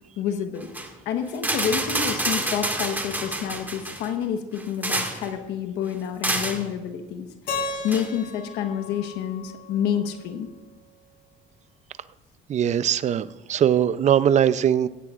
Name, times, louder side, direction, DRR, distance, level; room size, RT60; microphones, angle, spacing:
voice 1, 0.2-0.7 1.0-7.3 7.6-10.5, left 8 dB, 90° left, 6 dB, 1.2 m, -28 dB
sound 1, 0.6-0.9 1.3-4.1 4.6-5.3 6.2-6.6 7.9-8.1, right 1 dB, 10° right, 2.0 m, -27 dB
Keyboard (musical), 7.5-10.4, left 3 dB, 65° left, 3.6 m, -35 dB
voice 2, 12.5-14.9, right 9 dB, 45° right, 16 dB, 0.5 m, -21 dB
16.5 x 16.0 x 2.5 m, 1.1 s
cardioid pair, 110°, 17 cm